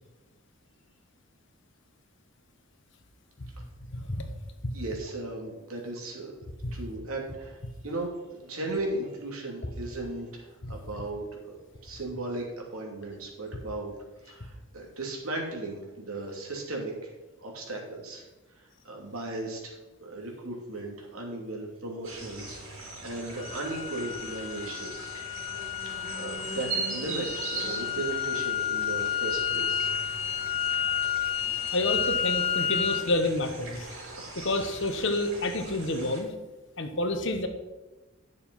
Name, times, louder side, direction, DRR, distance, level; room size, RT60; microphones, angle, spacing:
voice 1, 3.9-4.2 6.6-6.7 10.6-10.7 31.7-33.9 34.4-36.3 36.8-37.5, left 2 dB, 60° left, 6 dB, 1.2 m, -29 dB
voice 2, 4.7-6.4 6.7-7.6 7.8-11.6 11.8-12.4 12.7-13.9 14.2-17.1 17.4-18.2 18.5-19.7 20.0-25.2 25.8-29.9 34.1-34.3, right 2 dB, 85° right, -1 dB, 2.9 m, -36 dB
sound 1, 22.0-36.2, right 3 dB, 70° right, 4.2 m, -40 dB
sound 2, 23.4-33.0, left 8 dB, 25° left, 0.4 m, -31 dB
11.0 x 6.8 x 5.6 m, 1.1 s
head